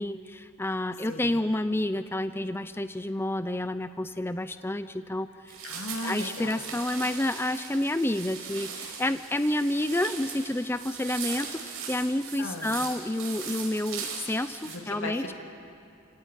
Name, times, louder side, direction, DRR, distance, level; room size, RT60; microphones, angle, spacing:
voice 1, 0.0-5.6 6.0-15.2, left 1 dB, 10° left, 11 dB, 0.5 m, -29 dB
voice 2, 1.0-1.3 5.6-6.6 12.4-12.7 14.6-15.3, left 2 dB, 70° left, 2 dB, 2.4 m, -37 dB
sound 1, 5.5-14.7, right 6 dB, 80° right, 5.0 m, -39 dB
29.0 x 17.5 x 8.9 m, 2.6 s
head